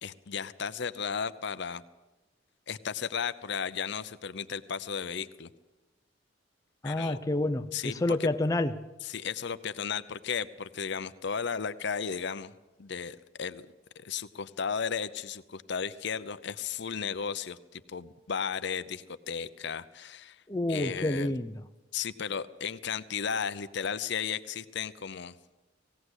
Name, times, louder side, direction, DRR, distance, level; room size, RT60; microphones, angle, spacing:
voice 1, 0.0-1.8 2.7-5.5 6.8-7.2 7.7-7.9 8.2-8.3 9.1-12.5 12.8-13.7 14.0-20.4 20.7-21.3 21.9-25.3, left 6 dB, 65° left, 0.7 m, -34 dB
voice 2, 6.8-8.9 20.5-21.6, left 2 dB, 20° left, 0.7 m, -29 dB
19.0 x 17.0 x 8.1 m
head